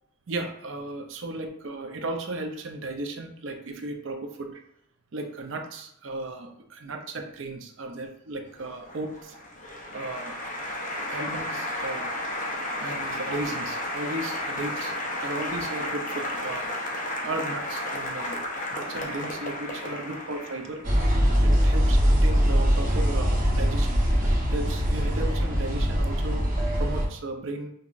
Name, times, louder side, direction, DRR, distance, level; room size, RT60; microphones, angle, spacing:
voice 1, 0.3-4.6 5.1-9.4 9.9-10.4 10.9-12.2 12.8-16.7 17.2-18.4 18.7-20.8 21.4-24.0 24.5-26.5 26.8-27.7, right 2 dB, 65° right, 4 dB, 0.5 m, -35 dB
Applause, 8.6-21.0, left 1 dB, 40° left, 0.6 m, -33 dB
sound 1, 20.8-27.1, equal, 40° right, 1.0 m, -22 dB
5.4 x 2.3 x 2.4 m, 0.71 s
head